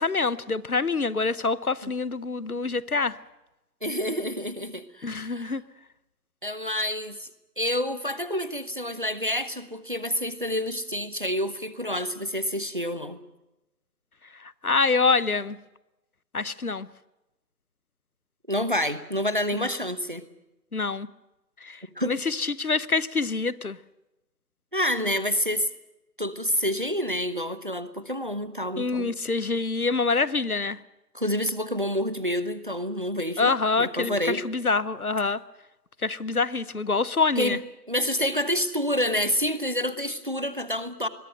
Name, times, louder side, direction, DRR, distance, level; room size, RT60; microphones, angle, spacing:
voice 1, 0.0-3.2 5.0-5.6 14.4-15.6 16.3-16.9 19.6-19.7 20.7-21.1 21.6-23.8 28.8-30.8 33.4-35.4 36.0-37.6, left 4 dB, 65° left, 1.0 m, -26 dB
voice 2, 3.8-5.6 6.4-7.3 7.6-13.2 18.5-20.2 22.0-22.2 24.7-25.7 26.2-29.1 31.1-34.4 37.4-37.6 37.9-41.1, equal, 30° right, 0.9 m, -28 dB
26.0 x 21.5 x 6.6 m
figure-of-eight pair, 165°, 48 cm